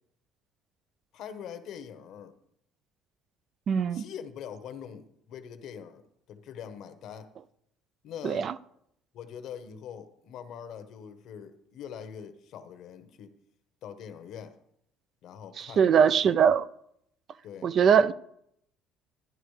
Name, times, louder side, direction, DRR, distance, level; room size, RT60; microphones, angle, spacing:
voice 1, 1.1-2.3 3.9-6.0 6.3-7.3 8.0-8.5 9.1-13.3 13.8-14.5 15.2-16.4 17.4-17.7, left 8 dB, 55° left, 1.0 m, -43 dB
voice 2, 3.7-4.0 8.2-8.5 15.6-16.6 17.6-18.1, right 7 dB, 40° right, 0.3 m, -22 dB
12.0 x 11.0 x 3.2 m
cardioid pair, 150°, 0 cm